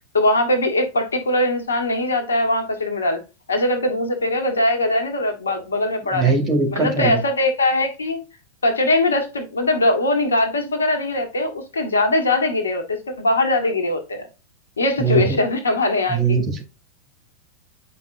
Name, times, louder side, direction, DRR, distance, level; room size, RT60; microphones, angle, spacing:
voice 1, 0.1-3.2 3.5-6.3 6.7-8.2 8.6-14.3 14.8-16.4, left 2 dB, 70° left, 1.5 m, -21 dB
voice 2, 6.1-7.2 15.0-15.4 16.1-16.4, right 4 dB, 30° right, 2.6 m, -20 dB
9.0 x 5.2 x 2.6 m
figure-of-eight pair, 90°, 0 cm